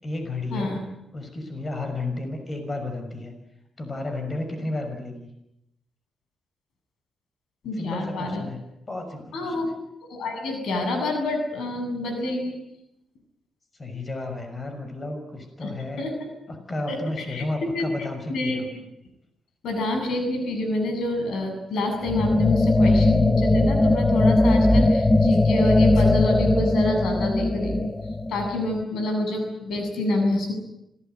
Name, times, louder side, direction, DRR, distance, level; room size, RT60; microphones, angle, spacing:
voice 1, 0.0-0.8 1.1-3.3 3.8-5.3 7.7-8.6 8.9-9.6 13.8-16.1 16.5-18.7, left 2 dB, 35° left, 6 dB, 6.2 m, -32 dB
voice 2, 7.6-8.4 9.3-9.7 10.1-12.6 15.6-15.7 16.0-16.1 16.9-17.9 18.3-18.6 19.6-27.9 28.3-30.5, left 1 dB, 85° left, 5 dB, 8.0 m, -27 dB
sound 1, 22.1-28.8, left 2 dB, 15° left, 1.2 m, -19 dB
27.0 x 19.0 x 9.4 m, 0.85 s
cardioid pair, 80°, 0 cm